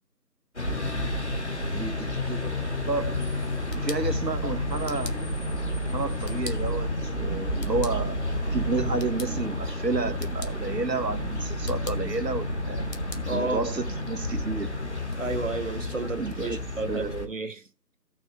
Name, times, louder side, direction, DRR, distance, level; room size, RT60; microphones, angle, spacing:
sound 1, 0.6-17.3, left 1 dB, 45° left, 1.5 m, -30 dB
voice 1, 1.7-2.5 2.9-3.2 3.7-6.9 7.2-8.2 8.5-12.8 13.3-14.7 16.2-16.6 16.9-17.3, right 3 dB, 85° right, 1.1 m, -31 dB
sound 2, 3.4-15.2, left 3 dB, 80° left, 1.8 m, -48 dB
voice 2, 13.3-13.7 15.2-17.6, right 3 dB, 50° right, 1.2 m, -32 dB
14.0 x 6.4 x 4.6 m
figure-of-eight pair, 170°, 48 cm